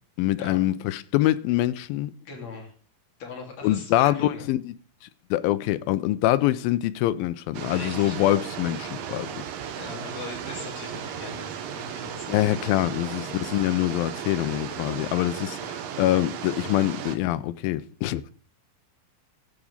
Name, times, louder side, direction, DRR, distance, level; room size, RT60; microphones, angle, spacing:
voice 1, 0.2-2.1 3.6-4.6 5.3-9.4 12.3-18.3, left 14 dB, 85° left, 2.5 m, -24 dB
voice 2, 2.2-2.7 3.2-4.5 7.6-8.4 9.7-12.3 12.9-13.2, left 4 dB, 50° left, 3.9 m, -40 dB
sound 1, 7.5-17.2, right 8 dB, 70° right, 1.7 m, -35 dB
13.5 x 5.1 x 7.2 m
omnidirectional pair, 4.1 m